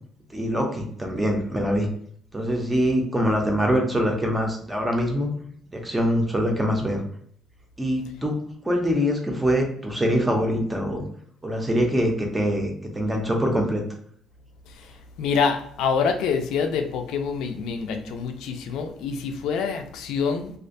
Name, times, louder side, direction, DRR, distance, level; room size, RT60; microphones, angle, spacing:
voice 1, 0.3-1.9 2.3-5.3 5.7-7.0 7.8-8.3 8.6-11.0 11.4-13.8, equal, 10° right, 1 dB, 0.4 m, -24 dB
voice 2, 15.2-20.5, left 6 dB, 80° left, 6 dB, 0.3 m, -26 dB
2.4 x 2.2 x 2.5 m, 0.62 s
cardioid pair, 175°, 0 cm